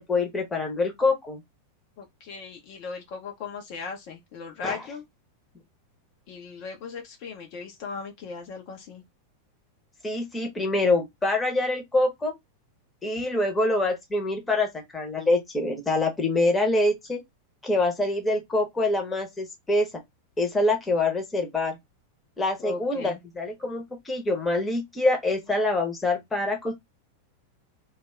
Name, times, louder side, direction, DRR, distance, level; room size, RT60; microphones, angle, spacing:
voice 1, 0.1-1.4 4.6-4.9 10.0-12.3 13.0-17.2 17.6-19.9 20.4-21.8 22.4-26.7, left 2 dB, 15° left, 0.9 m, -25 dB
voice 2, 2.0-5.0 6.3-9.0 22.6-23.2, left 5 dB, 45° left, 0.7 m, -37 dB
2.7 x 2.3 x 3.1 m
figure-of-eight pair, 90°, 0 cm